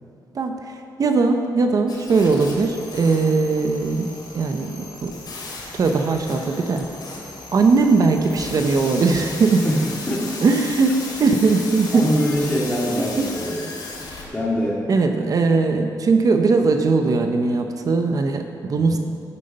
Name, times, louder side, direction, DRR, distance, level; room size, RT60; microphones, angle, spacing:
voice 1, 0.3-5.2 5.7-6.9 7.5-9.7 10.4-12.1 13.0-13.3 14.9-19.0, right 4 dB, 50° right, 5 dB, 0.9 m, -20 dB
sound 1, 1.9-14.3, left 3 dB, 65° left, 2.8 m, -36 dB
voice 2, 10.1-10.4 11.9-13.8 14.3-14.8 18.7-19.0, equal, 15° left, -6 dB, 2.1 m, -24 dB
12.0 x 9.8 x 5.5 m, 2.5 s
cardioid pair, 100°, 8 cm